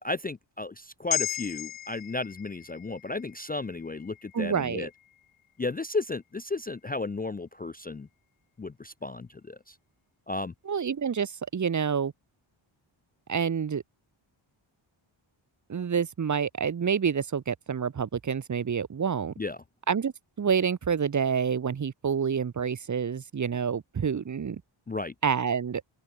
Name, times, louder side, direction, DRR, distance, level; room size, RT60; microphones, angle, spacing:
voice 1, 0.0-4.9 5.6-8.1 8.6-9.8 10.3-10.5 19.4-19.6 24.9-25.1, left 3 dB, 20° left, 0.5 m, -34 dB
sound 1, 1.1-5.6 6.0-6.1, left 13 dB, 85° left, 0.7 m, -37 dB
voice 2, 4.3-4.9 10.7-12.1 13.3-13.8 15.7-19.3 19.9-24.6 25.2-25.8, right 7 dB, 40° right, 0.8 m, -28 dB
open air
wide cardioid pair, 105°, 48 cm